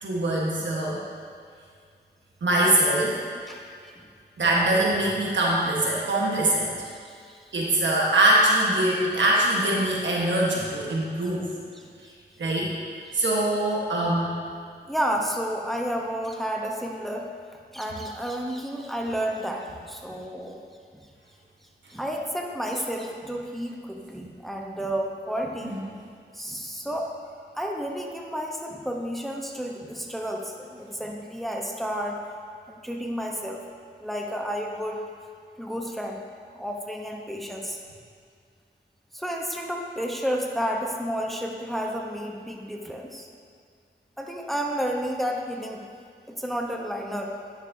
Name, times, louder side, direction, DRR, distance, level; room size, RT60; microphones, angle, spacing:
voice 1, 0.0-1.0 2.4-3.2 4.4-6.7 7.5-11.4 12.4-12.7 13.1-14.3 25.6-25.9, right 1 dB, 85° right, -4 dB, 1.4 m, -23 dB
voice 2, 3.5-4.1 6.9-7.5 11.7-12.1 14.8-17.3 17.7-20.6 20.9-21.1 21.9-25.7 26.3-27.2 27.5-32.2 32.7-33.6 34.0-35.1 35.6-36.2 36.5-37.8 39.1-43.3 44.2-45.8 46.3-47.4, equal, ahead, 0 dB, 0.9 m, -31 dB
10.5 x 6.4 x 2.7 m, 2.2 s
cardioid pair, 55°, 19 cm